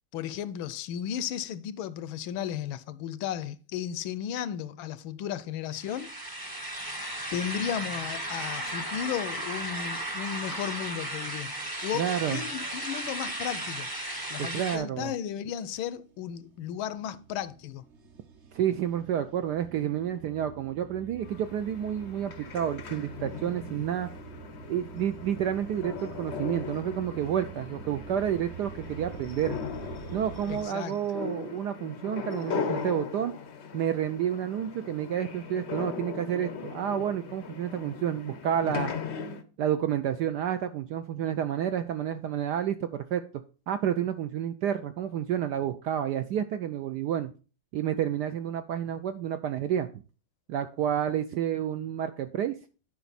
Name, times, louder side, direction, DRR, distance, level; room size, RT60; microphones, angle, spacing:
voice 1, 0.1-6.1 7.3-11.5 11.8-13.9 14.3-17.8 30.5-31.0, left 9 dB, 80° left, 1.4 m, -34 dB
sound 1, 5.7-14.8, right 1 dB, 20° right, 0.6 m, -35 dB
voice 2, 11.9-12.4 14.4-15.1 18.5-24.1 24.7-29.6 30.1-33.3 33.7-38.9 39.6-43.2 43.7-47.3 47.7-49.9 50.5-52.6, right 10 dB, 75° right, 1.0 m, -30 dB
sound 2, 15.9-30.7, right 6 dB, 45° right, 1.0 m, -47 dB
sound 3, 21.2-39.4, left 6 dB, 65° left, 0.6 m, -39 dB
10.5 x 5.2 x 4.1 m
omnidirectional pair, 2.3 m